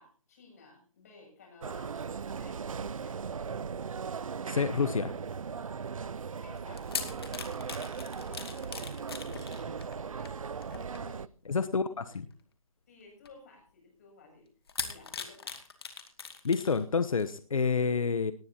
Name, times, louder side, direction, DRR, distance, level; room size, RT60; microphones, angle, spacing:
voice 1, 0.0-2.0 2.3-3.2 6.4-10.5 10.8-11.3 11.9-12.3 12.9-14.5 14.8-15.6, left 3 dB, 25° left, 2 dB, 7.3 m, -55 dB
sound 1, 1.6-11.3, right 6 dB, 75° right, 0.6 m, -38 dB
voice 2, 4.5-5.1 11.5-12.3 16.4-18.3, left 5 dB, 75° left, 12 dB, 1.0 m, -28 dB
sound 2, 6.6-11.4 12.1-12.3 13.2-13.3 14.7-16.8 17.2-17.3, left 5 dB, 45° left, 2.4 m, -41 dB
18.5 x 17.0 x 2.9 m, 0.41 s
hypercardioid pair, 175°, 18 cm